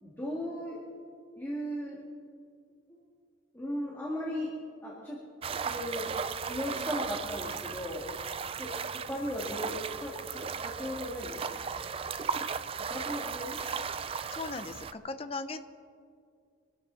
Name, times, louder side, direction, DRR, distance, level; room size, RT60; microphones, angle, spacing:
voice 1, 0.0-0.8 1.4-2.0 2.9-3.0 3.5-4.5 4.8-5.2 5.5-6.2 6.4-8.1 8.6-11.4 12.7-13.6, equal, 10° left, -5 dB, 2.2 m, -37 dB
sound 1, 5.4-14.9, right 6 dB, 30° right, 0.3 m, -36 dB
voice 2, 14.3-15.6, left 3 dB, 30° left, 9 dB, 0.6 m, -38 dB
25.0 x 12.5 x 4.1 m, 2.2 s
head